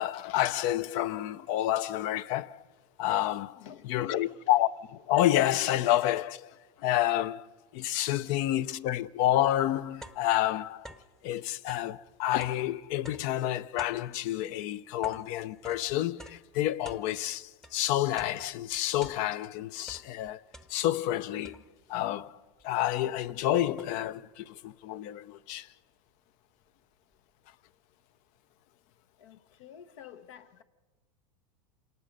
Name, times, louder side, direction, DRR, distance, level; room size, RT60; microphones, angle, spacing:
voice 1, 0.0-2.6 3.0-10.9 11.2-20.4 20.7-25.7, left 13 dB, 50° left, 0.6 m, -29 dB
voice 2, 3.6-4.4 8.5-8.6 29.2-30.6, left 10 dB, 70° left, 1.1 m, -46 dB
sound 1, 9.1-9.2 9.6-11.2 11.6-17.8 18.2-19.5 19.8-21.1 21.4-22.0 22.6-22.7 23.0-24.2, right 1 dB, 5° left, 0.8 m, -51 dB
26.5 x 19.0 x 5.3 m
supercardioid pair, 120°, 17 cm